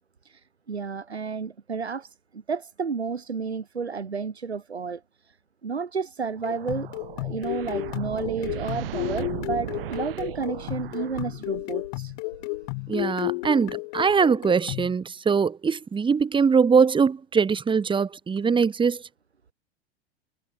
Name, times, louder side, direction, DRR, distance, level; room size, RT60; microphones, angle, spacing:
voice 1, 0.2-5.4 5.6-6.9 7.2-12.1, right 5 dB, 80° right, 4.5 m, -32 dB
sound 1, 6.4-14.9, left 34 dB, 45° left, 1.3 m, -33 dB
sound 2, 6.4-11.8, right 13 dB, 60° right, 4.4 m, -37 dB
voice 2, 12.9-19.0, right 5 dB, 15° right, 2.5 m, -22 dB
figure-of-eight pair, 90°, 32 cm